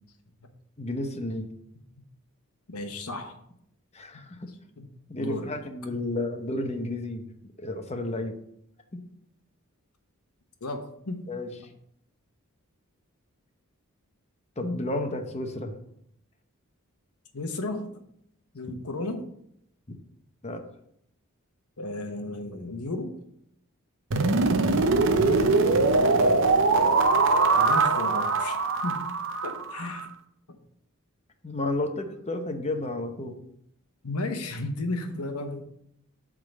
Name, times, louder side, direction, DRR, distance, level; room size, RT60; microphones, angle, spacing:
voice 1, 0.8-1.5 3.9-4.5 5.1-7.2 7.6-8.4 8.9-9.0 11.3-11.5 14.6-15.7 20.4-20.6 25.3-25.4 26.1-26.3 31.4-33.4, left 2 dB, 30° left, 6 dB, 0.9 m, -32 dB
voice 2, 2.7-3.4 4.1-4.3 4.8-4.9 5.1-5.5 5.9-6.0 10.6-11.3 17.3-18.0 18.5-19.3 21.8-23.2 27.5-28.6 28.8-29.0 29.4-30.1 30.5-30.6 34.0-35.6, left 2 dB, 85° left, 6 dB, 1.0 m, -34 dB
sound 1, 24.1-30.0, right 3 dB, 60° right, 0.7 m, -22 dB
7.9 x 3.8 x 6.5 m, 0.73 s
head